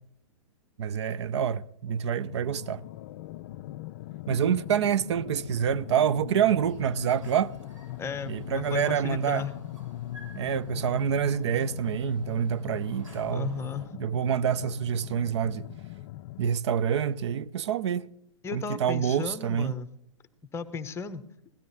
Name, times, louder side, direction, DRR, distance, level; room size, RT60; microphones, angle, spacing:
voice 1, 0.8-2.8 4.3-7.5 8.3-9.4 10.3-13.5 14.0-15.7 16.4-18.1 18.5-19.7, right 8 dB, 60° right, 0.5 m, -27 dB
sound 1, 1.8-16.5, left 14 dB, 45° left, 0.4 m, -41 dB
sound 2, 6.3-13.9, right 1 dB, 75° right, 6.5 m, -53 dB
voice 2, 8.0-9.5 13.3-13.8 18.4-19.9 20.5-21.2, left 6 dB, 15° left, 0.9 m, -34 dB
17.5 x 12.5 x 4.1 m
hypercardioid pair, 120°, 16 cm